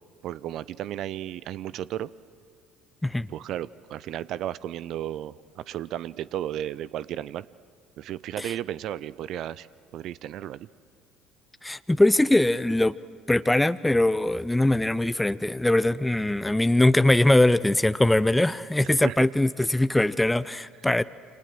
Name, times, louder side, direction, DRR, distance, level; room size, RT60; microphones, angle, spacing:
voice 1, 0.2-2.1 3.3-7.5 8.0-9.7 9.9-10.7 19.0-19.2, right 12 dB, 55° right, 19 dB, 0.6 m, -34 dB
voice 2, 11.6-12.9 13.3-21.0, left 1 dB, 10° left, 15 dB, 0.6 m, -22 dB
28.0 x 26.0 x 7.7 m, 2.4 s
figure-of-eight pair, 55°, 0 cm